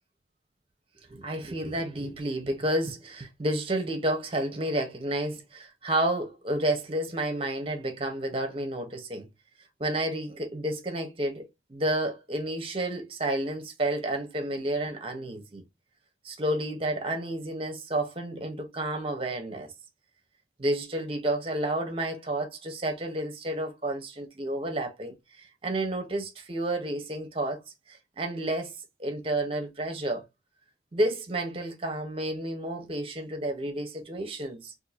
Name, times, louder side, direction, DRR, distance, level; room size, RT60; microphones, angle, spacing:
voice 1, 1.1-9.3 9.8-15.6 16.2-19.7 20.6-27.6 27.9-28.7 29.0-30.2 30.9-34.7, right 1 dB, 30° right, 0.8 m, -30 dB
2.6 x 2.6 x 4.0 m
head